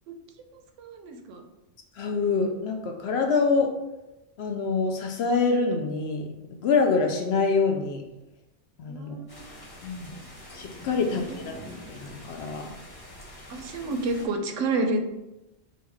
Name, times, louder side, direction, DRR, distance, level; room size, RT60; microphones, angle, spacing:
voice 1, 0.5-1.4 8.8-9.6 13.5-15.0, right 2 dB, 80° right, 6 dB, 0.9 m, -30 dB
voice 2, 2.0-3.8 4.4-8.0 8.8-9.1 9.8-10.1 10.5-11.6 11.9-12.7, left 4 dB, 65° left, 3 dB, 0.8 m, -26 dB
sound 1, 9.3-14.3, left 1 dB, 20° left, 1.1 m, -45 dB
4.1 x 2.3 x 4.6 m, 0.95 s
omnidirectional pair, 1.3 m